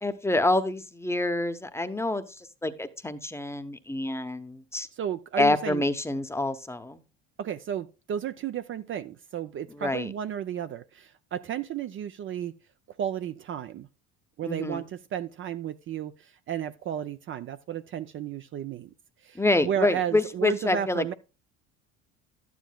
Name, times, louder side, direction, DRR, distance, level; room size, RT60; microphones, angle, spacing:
voice 1, 0.0-2.2 2.6-4.9 5.4-7.0 9.7-10.1 14.4-14.8 19.4-21.1, left 2 dB, 10° left, 0.7 m, -27 dB
voice 2, 4.9-5.8 7.4-12.5 13.0-13.9 14.4-18.9 19.2-21.1, right 9 dB, 40° right, 0.5 m, -33 dB
11.5 x 9.3 x 2.2 m
supercardioid pair, 85°, 31 cm